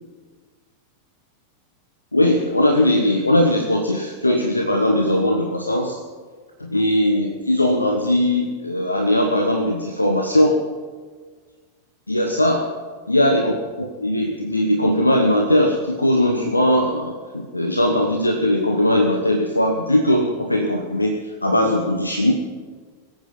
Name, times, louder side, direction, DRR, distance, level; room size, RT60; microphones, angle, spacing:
voice 1, 2.1-6.0 6.6-10.6 12.1-12.6 13.1-13.5 13.8-22.3, left 1 dB, 85° left, 3 dB, 1.3 m, -19 dB
22.0 x 9.2 x 5.7 m, 1.5 s
figure-of-eight pair, 90°, 0 cm